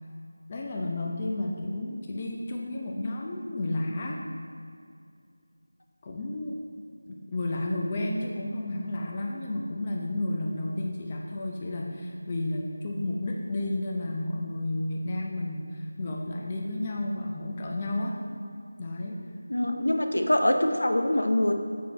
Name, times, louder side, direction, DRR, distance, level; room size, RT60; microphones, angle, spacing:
voice 1, 0.5-4.3 6.0-6.6 7.1-18.2 18.8-19.2, left 1 dB, 25° left, -1 dB, 0.5 m, -32 dB
voice 2, 19.5-21.5, left 1 dB, 65° left, 5 dB, 0.8 m, -24 dB
7.2 x 6.1 x 4.2 m, 2.3 s
figure-of-eight pair, 165°, 0 cm